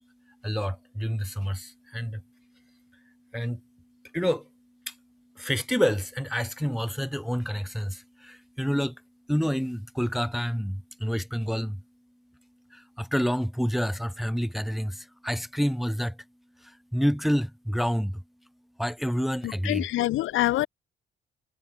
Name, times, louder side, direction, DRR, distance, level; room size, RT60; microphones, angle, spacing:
voice 1, 0.4-1.6 1.9-2.1 3.3-3.6 4.1-4.4 5.4-7.9 8.6-8.9 9.3-10.7 11.0-11.8 13.1-14.9 15.2-16.1 16.9-18.1 18.8-19.8, equal, ahead, 0.8 m, -27 dB
voice 2, 19.4-20.7, left 15 dB, 80° left, 0.9 m, -25 dB
cardioid pair, 90°, 20 cm